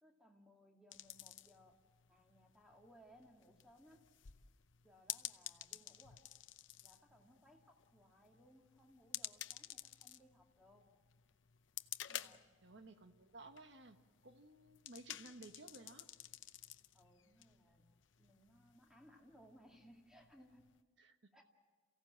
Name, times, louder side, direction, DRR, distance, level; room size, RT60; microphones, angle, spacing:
voice 1, 0.0-1.8 2.1-4.0 4.8-6.3 6.8-10.9 12.1-12.4 16.9-17.9 18.2-20.7 21.3-21.4, equal, 5° right, 1 dB, 2.2 m, -65 dB
sound 1, 0.9-20.8, left 13 dB, 85° left, 0.7 m, -53 dB
voice 2, 12.6-16.1 21.0-21.3, right 2 dB, 70° right, 8 dB, 1.3 m, -57 dB
28.5 x 16.5 x 7.5 m, 1.5 s
head